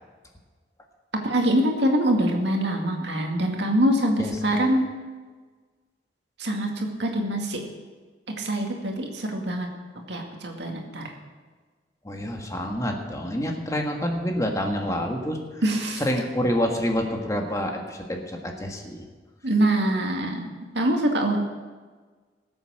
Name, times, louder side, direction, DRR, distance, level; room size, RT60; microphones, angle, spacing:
voice 1, 1.2-4.9 6.4-7.6 8.4-9.7 10.1-11.1 15.6-16.0 19.4-20.5 20.7-21.4, right 1 dB, 70° right, 2 dB, 2.1 m, -24 dB
voice 2, 12.0-15.6 16.0-19.0, equal, 20° left, 2 dB, 1.5 m, -27 dB
19.0 x 8.0 x 6.5 m, 1.4 s
head